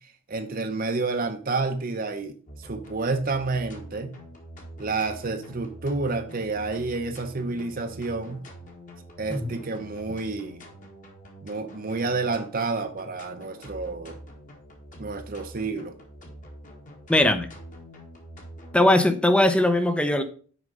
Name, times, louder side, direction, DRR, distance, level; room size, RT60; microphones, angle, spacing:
voice 1, 0.3-4.1 4.8-8.5 9.2-10.6 11.4-14.2 15.0-15.9, right 3 dB, 40° right, 0.7 m, -29 dB
sound 1, 2.5-18.8, equal, 35° left, 1.6 m, -45 dB
voice 2, 17.1-17.5 18.7-20.2, left 1 dB, 5° left, 0.5 m, -20 dB
6.2 x 5.2 x 5.3 m
head